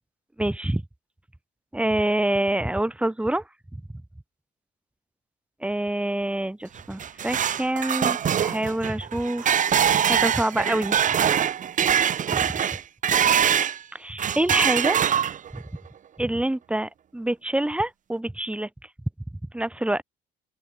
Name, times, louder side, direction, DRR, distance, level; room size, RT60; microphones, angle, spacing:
voice 1, 0.4-0.8 1.7-3.4 3.7-4.0 5.6-9.6 10.1-11.0 12.3-12.5 13.9-15.0 15.5-15.6 16.2-18.7 19.5-20.0, right 1 dB, 5° right, 6.4 m, -26 dB
sound 1, 6.8-13.8 14.2-15.6, right 9 dB, 50° right, 6.3 m, -23 dB
open air
cardioid pair, 110°, 17 cm